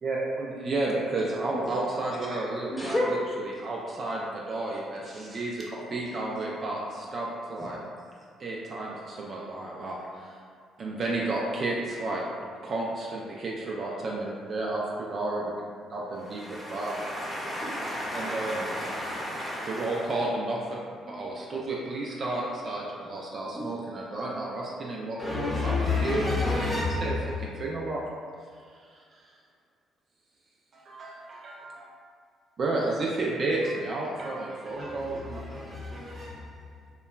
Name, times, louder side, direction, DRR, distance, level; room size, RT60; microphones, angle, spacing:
voice 1, 0.0-5.6 5.9-7.8 8.4-10.4 10.8-12.2 12.6-15.5 15.9-16.9 18.1-18.6 19.4-20.8 21.1-28.0 28.7-29.3 30.7-31.8 32.6-35.4, right 2 dB, 50° right, -4 dB, 0.3 m, -32 dB
voice 2, 1.5-2.2 5.0-5.5 7.6-7.7 8.2-8.3 21.0-21.4 23.5-23.7 34.7-36.9, left 1 dB, 30° right, -6 dB, 0.8 m, -41 dB
voice 3, 2.7-3.1 16.3-20.1 25.2-27.2, left 2 dB, 25° left, -5 dB, 0.7 m, -30 dB
2.9 x 2.1 x 2.2 m, 2.1 s
hypercardioid pair, 60°, 0 cm